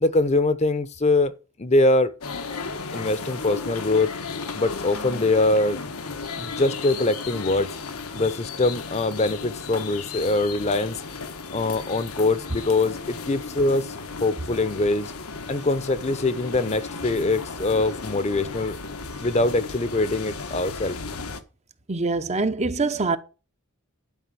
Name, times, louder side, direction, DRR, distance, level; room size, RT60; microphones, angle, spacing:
voice 1, 0.0-2.1 2.9-4.1 4.5-5.8 6.4-7.8 8.1-11.0 11.5-15.1 15.5-18.8 19.2-21.0, left 2 dB, 30° left, 0.8 m, -23 dB
sound 1, 2.2-21.4, left 4 dB, 85° left, 1.4 m, -35 dB
voice 2, 21.9-23.2, right 3 dB, 30° right, 0.8 m, -24 dB
11.5 x 5.1 x 7.7 m
head